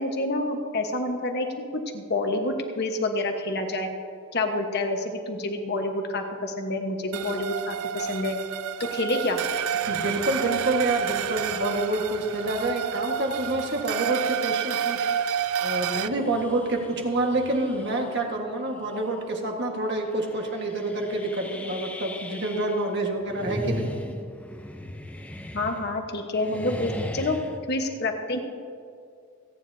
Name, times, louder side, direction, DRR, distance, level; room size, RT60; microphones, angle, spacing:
voice 1, 0.0-1.5 1.7-3.9 4.3-8.4 8.8-9.4 25.5-27.4 27.7-28.6, left 2 dB, 50° left, 3 dB, 1.2 m, -28 dB
sound 1, 7.1-16.1, right 9 dB, 80° right, 0.4 m, -29 dB
sound 2, 9.8-14.0 14.6-14.7 15.7-18.3 18.7-19.1 19.4-19.5 20.1-22.9 23.2-26.1 26.3-27.6, left 1 dB, 5° left, 0.5 m, -39 dB
voice 2, 9.9-15.1 15.6-23.9, right 2 dB, 50° right, 2 dB, 1.6 m, -27 dB
28.0 x 9.7 x 2.8 m, 2.4 s
head